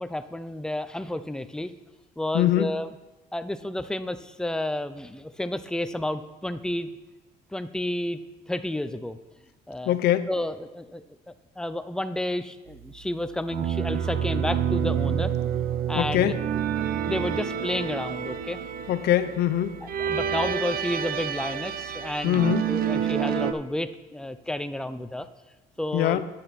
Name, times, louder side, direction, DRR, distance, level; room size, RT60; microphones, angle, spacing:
voice 1, 0.0-1.7 2.2-2.9 3.3-6.9 7.5-8.2 8.5-9.2 9.7-10.0 10.3-11.0 11.6-15.3 15.9-16.4 17.1-18.6 19.8-25.3 25.8-26.2, left 1 dB, 5° left, 11 dB, 0.4 m, -31 dB
voice 2, 2.3-2.7 9.9-10.3 16.0-16.4 18.9-19.8 22.2-22.6 25.9-26.3, left 12 dB, 70° left, 12 dB, 0.6 m, -23 dB
sound 1, 13.5-23.5, right 8 dB, 60° right, 0.6 m, -28 dB
10.0 x 7.6 x 4.1 m, 1.1 s
cardioid pair, 110°, 17 cm